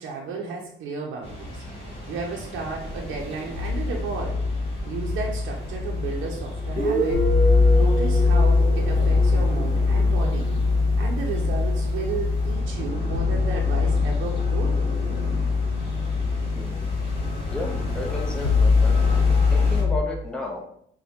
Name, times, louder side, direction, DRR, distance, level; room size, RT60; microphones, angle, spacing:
voice 1, 0.0-4.4 4.9-7.3 7.7-10.5 11.0-14.8, right 4 dB, 75° right, 0 dB, 0.5 m, -33 dB
sound 1, 1.2-19.8, left 1 dB, 30° left, 1.4 m, -35 dB
sound 2, 3.6-20.0, left 4 dB, 55° left, 0.9 m, -22 dB
Guitar, 6.8-10.3, right 2 dB, 40° right, 1.1 m, -28 dB
voice 2, 16.5-16.9 17.5-18.9 19.5-20.6, left 2 dB, 5° left, 0 dB, 0.6 m, -33 dB
4.2 x 2.1 x 2.8 m, 0.67 s
cardioid pair, 90°, 20 cm